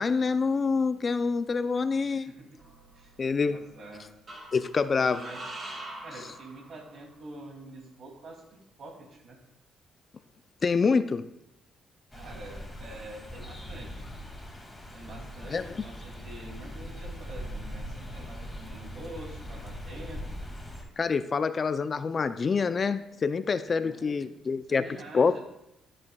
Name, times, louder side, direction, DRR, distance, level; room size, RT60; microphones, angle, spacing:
voice 1, 0.0-2.3 3.2-3.6 4.5-5.2 10.6-11.3 15.5-15.7 21.0-24.8 25.1-25.3, left 5 dB, 40° left, 12 dB, 0.5 m, -26 dB
voice 2, 2.0-2.6 2.9-4.1 4.9-5.5 6.0-9.4 12.1-14.1 14.9-20.2 23.7-24.2 24.7-25.4, right 1 dB, 60° right, 1 dB, 2.7 m, -46 dB
sound 1, 2.6-3.4 4.3-7.1, right 1 dB, 45° right, 3.3 m, -44 dB
sound 2, 12.1-20.8, equal, 10° left, 2.3 m, -41 dB
13.0 x 8.6 x 2.3 m, 0.84 s
cardioid pair, 90°, 0 cm